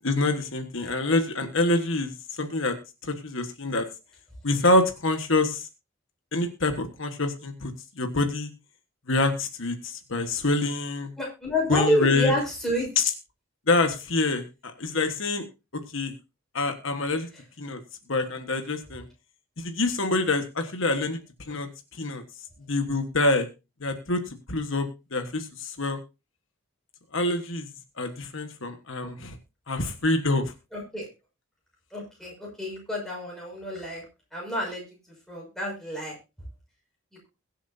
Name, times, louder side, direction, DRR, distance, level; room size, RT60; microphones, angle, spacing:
voice 1, 0.0-2.1 2.4-2.7 3.2-3.8 4.4-5.6 6.3-7.7 8.0-8.5 9.1-11.1 11.7-12.3 13.0-13.1 13.7-14.4 14.8-15.4 15.9-16.1 16.5-17.3 17.6-17.8 18.1-19.0 19.6-21.2 21.5-21.7 22.0-22.2 22.7-23.5 23.8-24.2 24.5-24.9 25.1-26.0 27.1-27.6 28.0-29.3 29.7-30.5, left 2 dB, 65° left, 6 dB, 1.4 m, -26 dB
voice 2, 11.2-12.9 30.7-31.1 31.9-34.0 34.3-34.8 35.3-36.1, equal, ahead, -3 dB, 6.0 m, -28 dB
22.0 x 7.4 x 2.7 m, 0.28 s
head